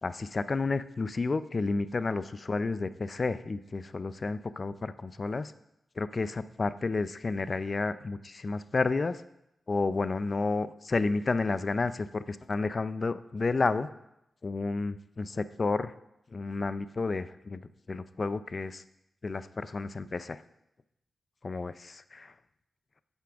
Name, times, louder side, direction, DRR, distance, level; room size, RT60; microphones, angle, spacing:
voice 1, 0.0-5.5 6.0-9.2 9.7-13.9 14.4-15.9 16.3-17.6 17.9-18.8 19.2-20.4 21.4-22.3, left 3 dB, 50° left, 14 dB, 0.5 m, -31 dB
9.7 x 6.9 x 3.5 m, 0.84 s
supercardioid pair, 40°, 0 cm